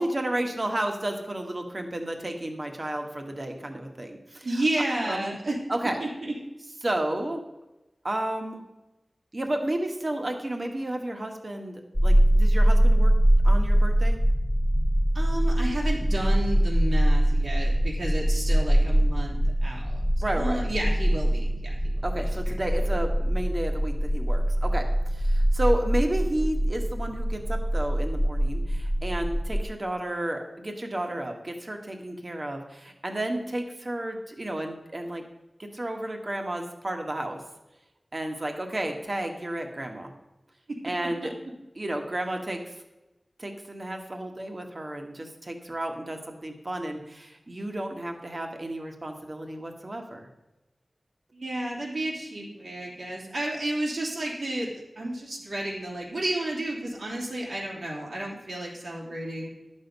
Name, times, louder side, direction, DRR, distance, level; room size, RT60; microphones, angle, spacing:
voice 1, 0.0-4.6 5.1-5.4 5.7-6.0 6.8-7.4 8.0-8.6 9.3-13.1 13.4-14.2 20.2-20.6 22.0-35.2 35.6-37.4 38.1-40.1 40.8-41.3 41.8-42.7 43.4-50.3, right 1 dB, 40° right, 3 dB, 1.5 m, -32 dB
voice 2, 4.4-5.6 6.0-6.3 15.1-20.0 20.4-22.2 40.7-40.8 41.2-41.3 51.3-59.5, right 1 dB, 90° right, -4 dB, 2.9 m, -32 dB
sound 1, 11.9-29.6, right 1 dB, 10° right, 1.6 m, -23 dB
11.0 x 6.5 x 5.4 m, 1.0 s
wide cardioid pair, 60°, 0 cm